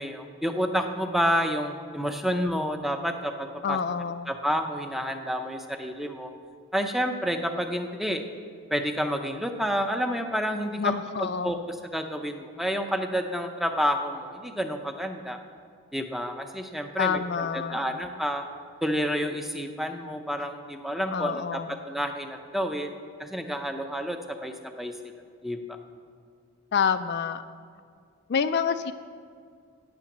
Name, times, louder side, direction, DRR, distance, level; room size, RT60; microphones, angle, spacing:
voice 1, 0.0-3.8 4.3-6.3 6.7-8.2 8.7-15.4 15.9-18.4 18.8-25.1 25.4-25.8, equal, ahead, 6 dB, 0.6 m, -29 dB
voice 2, 3.6-4.3 10.8-11.6 17.0-17.9 21.1-21.8 26.7-27.4 28.3-28.9, left 7 dB, 50° left, 11 dB, 0.4 m, -27 dB
9.1 x 8.7 x 7.2 m, 2.1 s
head